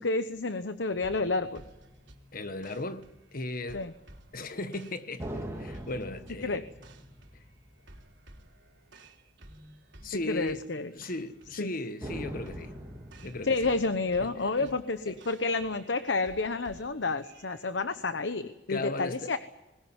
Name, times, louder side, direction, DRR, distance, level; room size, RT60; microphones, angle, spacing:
voice 1, 0.0-1.6 3.7-3.9 6.4-6.6 10.1-10.9 11.6-11.7 13.4-19.4, left 3 dB, 75° left, 1.0 m, -30 dB
sound 1, 0.9-2.8 5.2-8.9 9.3-9.4 12.0-15.7, equal, 15° right, 3.2 m, -44 dB
sound 2, 1.0-17.7, right 1 dB, 80° right, 3.6 m, -55 dB
voice 2, 2.3-3.9 4.3-6.6 7.3-7.4 10.0-10.6 10.9-12.7 13.2-13.6 14.2-14.7 15.1-15.2 18.7-19.3, left 2 dB, 50° left, 1.4 m, -37 dB
21.5 x 19.5 x 9.7 m
head